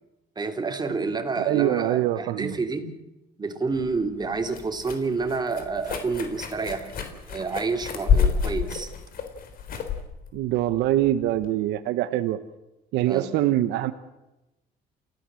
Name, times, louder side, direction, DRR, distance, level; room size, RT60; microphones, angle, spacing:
voice 1, 0.3-2.9 3.4-6.9 7.3-8.9 13.1-13.3, right 4 dB, 25° right, 5 dB, 3.3 m, -29 dB
voice 2, 1.4-2.5 10.3-12.4 12.9-13.9, right 13 dB, 85° right, 9 dB, 1.1 m, -24 dB
sound 1, 3.7-11.5, left 7 dB, 60° left, 4.0 m, -29 dB
29.0 x 16.0 x 7.7 m, 0.99 s
cardioid pair, 110°, 17 cm